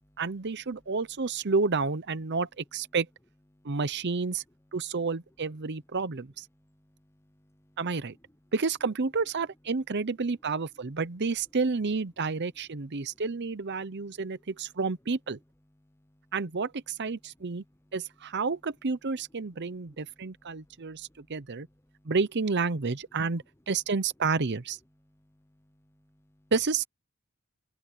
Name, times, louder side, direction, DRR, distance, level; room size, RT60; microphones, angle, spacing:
voice 1, 0.2-3.1 3.6-4.4 4.7-6.5 7.8-8.2 8.5-15.4 16.3-17.6 17.9-21.7 22.0-24.8 26.5-26.8, right 4 dB, 50° right, 0.8 m, -30 dB
voice 2, 6.6-7.8 8.1-8.2 13.0-13.2 13.9-14.5 15.8-16.3 17.4-17.9 19.7-22.1 25.0-26.5, equal, 10° left, 0.9 m, -65 dB
open air
head